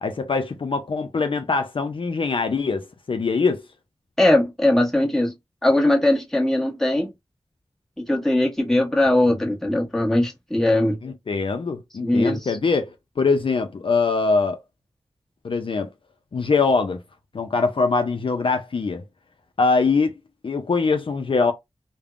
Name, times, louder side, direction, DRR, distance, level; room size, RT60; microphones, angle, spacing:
voice 1, 0.0-3.6 11.0-12.9 13.2-14.6 15.4-15.9 16.3-17.0 17.3-19.0 19.6-20.1 20.4-21.5, left 4 dB, 55° left, 0.4 m, -22 dB
voice 2, 4.2-5.3 5.6-7.1 8.1-11.0 12.0-12.6, left 1 dB, 5° left, 1.1 m, -20 dB
3.3 x 2.0 x 2.4 m
cardioid pair, 45°, 10 cm